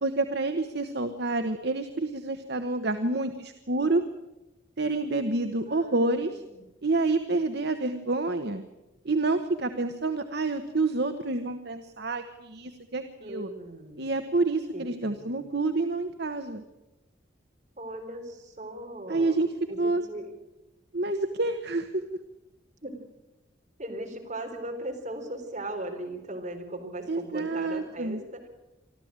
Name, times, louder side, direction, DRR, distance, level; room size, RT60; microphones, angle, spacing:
voice 1, 0.0-4.0 4.8-6.4 6.8-8.6 9.0-13.5 14.0-16.6 19.1-19.5 19.8-20.0 20.9-22.0 27.1-28.2, right 2 dB, 55° right, 7 dB, 1.1 m, -28 dB
voice 2, 5.6-6.0 6.3-6.6 13.2-14.1 14.7-15.4 17.8-19.4 19.7-20.3 22.8-23.0 23.8-28.5, right 1 dB, 35° right, 1 dB, 4.1 m, -38 dB
25.0 x 14.0 x 8.8 m, 1.0 s
head